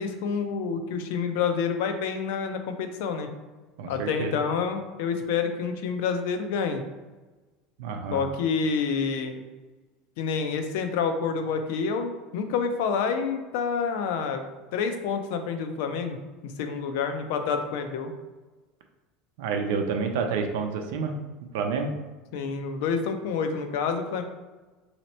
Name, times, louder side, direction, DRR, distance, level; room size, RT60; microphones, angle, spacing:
voice 1, 0.0-3.3 3.9-6.8 8.1-9.4 10.2-14.4 14.7-16.2 16.4-18.1 22.3-24.2, left 6 dB, 75° left, 6 dB, 0.5 m, -28 dB
voice 2, 3.8-4.4 7.8-8.2 19.4-21.2 21.5-21.9, right 5 dB, 80° right, 4 dB, 0.6 m, -29 dB
3.1 x 2.9 x 4.2 m, 1.2 s
supercardioid pair, 145°, 0 cm